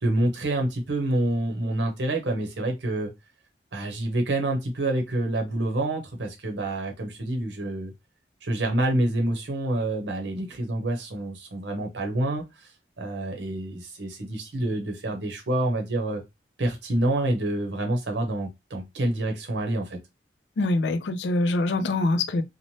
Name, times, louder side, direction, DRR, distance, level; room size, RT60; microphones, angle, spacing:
voice 1, 0.0-3.1 3.7-7.9 8.4-12.7 13.0-16.2 16.6-20.0, right 1 dB, 75° right, 0.7 m, -27 dB
voice 2, 20.6-22.4, left 2 dB, 75° left, 0.4 m, -24 dB
3.1 x 2.1 x 2.7 m
head